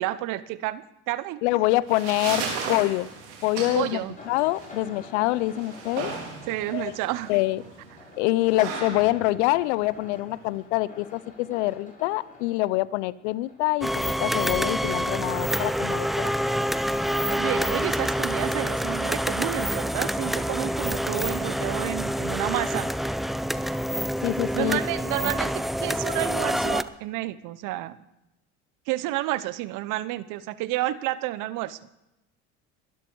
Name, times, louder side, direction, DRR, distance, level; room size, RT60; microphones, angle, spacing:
voice 1, 0.0-1.4 3.7-4.2 6.5-7.3 17.2-22.9 24.5-28.0 28.9-31.8, right 16 dB, 65° right, 16 dB, 1.1 m, -30 dB
voice 2, 1.4-3.1 3.4-4.0 4.3-6.1 6.7-6.9 7.3-7.6 8.2-16.3 24.2-24.8, left 18 dB, 75° left, 20 dB, 0.7 m, -25 dB
sound 1, 1.6-10.6, right 5 dB, 85° right, 4.6 m, -36 dB
sound 2, 3.4-18.5, left 3 dB, 25° left, 6.6 m, -49 dB
sound 3, 13.8-26.8, equal, ahead, 0.7 m, -27 dB
22.0 x 12.5 x 4.7 m, 0.92 s
hypercardioid pair, 80°, 34 cm